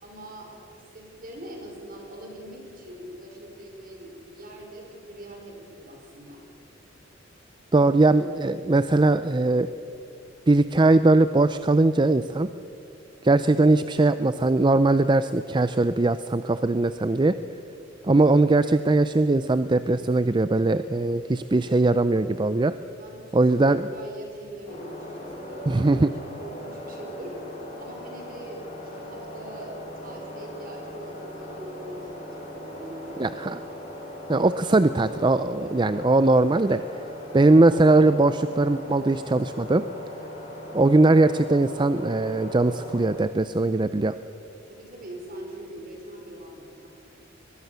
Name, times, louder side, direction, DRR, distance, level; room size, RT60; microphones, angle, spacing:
voice 1, 0.0-6.4 23.0-27.4 27.8-33.4 35.6-35.8 44.7-46.9, right 1 dB, 45° right, 1 dB, 5.2 m, -42 dB
voice 2, 7.7-9.7 10.5-12.5 13.2-17.4 18.0-22.8 23.3-23.9 25.7-26.1 33.2-33.6 34.3-36.8 37.3-39.8 40.7-44.1, right 2 dB, 25° right, 12 dB, 0.5 m, -20 dB
sound 1, 24.7-43.1, left 1 dB, 35° left, 5.0 m, -39 dB
22.0 x 21.5 x 6.9 m, 2.6 s
head